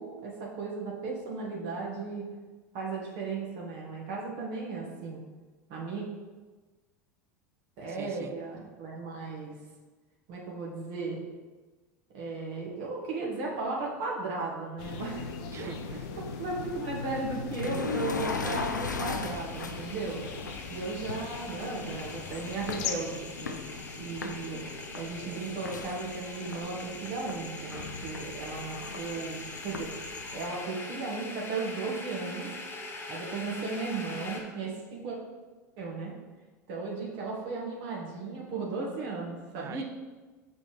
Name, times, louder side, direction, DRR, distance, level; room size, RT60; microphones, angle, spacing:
voice 1, 0.0-2.3 2.7-5.2 5.7-6.0 7.8-9.5 10.3-11.2 12.1-15.3 15.6-15.7 16.2-20.2 20.7-23.6 24.0-24.6 24.9-29.9 30.3-32.5 33.1-35.2 35.8-36.1 36.7-39.8, right 3 dB, 55° right, -3 dB, 1.5 m, -36 dB
voice 2, 7.9-8.4 15.5-16.2 39.6-39.8, right 8 dB, 25° right, 13 dB, 0.3 m, -44 dB
sound 1, 14.8-30.5, left 4 dB, 90° left, 0.4 m, -38 dB
sound 2, 14.8-22.9, left 8 dB, 50° left, 0.7 m, -43 dB
sound 3, 18.1-34.4, left 2 dB, 20° left, 1.3 m, -43 dB
6.7 x 5.1 x 3.2 m, 1.3 s
figure-of-eight pair, 80°, 10 cm